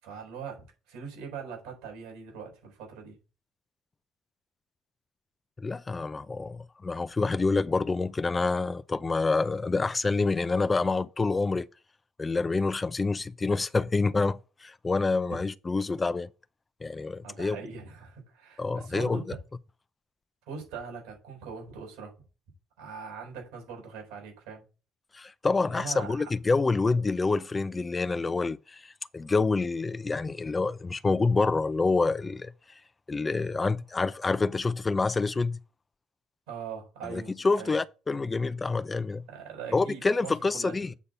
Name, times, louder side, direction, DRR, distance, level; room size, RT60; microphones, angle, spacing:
voice 1, 0.0-3.2 17.2-19.3 20.5-22.1 22.8-24.6 25.7-26.3 36.5-37.8 39.3-40.9, right 5 dB, 85° right, 6.0 m, -41 dB
voice 2, 5.6-11.7 12.2-16.3 16.8-17.6 18.6-19.2 25.1-32.5 33.1-35.6 37.0-39.2 39.7-40.9, left 3 dB, 25° left, 0.5 m, -27 dB
8.2 x 4.1 x 7.0 m
supercardioid pair, 75°, 0 cm